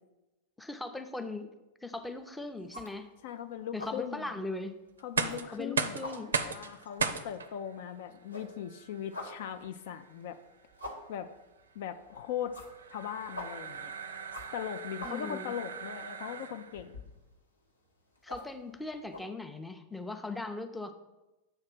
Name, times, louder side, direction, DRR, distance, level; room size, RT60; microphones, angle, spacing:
voice 1, 0.6-1.5 1.8-3.1 3.7-4.8 5.5-6.4 15.0-15.5 18.2-20.9, left 2 dB, 5° left, 7 dB, 0.5 m, -39 dB
sound 1, 2.0-2.3 2.6-3.4 3.6-4.1 4.4-4.5 5.0-5.7 5.9-7.9 8.2-19.2, left 1 dB, 80° left, 1.1 m, -47 dB
voice 2, 3.2-4.3 5.0-6.0 6.4-10.4 11.1-11.3 11.8-12.5 12.9-13.9 14.5-16.9, left 9 dB, 55° left, 9 dB, 0.4 m, -39 dB
sound 2, 5.0-16.9, right 6 dB, 70° right, 0.4 m, -38 dB
7.6 x 3.2 x 5.9 m, 1.0 s
figure-of-eight pair, 90°, 0 cm